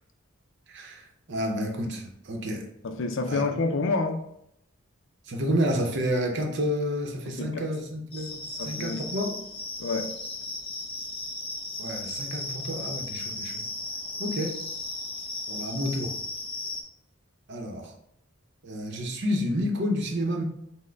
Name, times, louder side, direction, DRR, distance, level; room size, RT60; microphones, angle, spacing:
voice 1, 0.7-2.7 3.3-3.4 5.2-9.4 11.8-13.6 14.2-14.6 15.5-16.2 17.5-17.9 18.6-20.4, equal, 60° right, 2 dB, 0.7 m, -30 dB
voice 2, 2.8-4.2 7.3-7.6 8.6-9.0 9.8-10.1, left 3 dB, 65° left, 6 dB, 0.5 m, -28 dB
sound 1, 8.1-16.8, left 2 dB, 25° left, 0.7 m, -36 dB
6.1 x 2.1 x 3.3 m, 0.76 s
head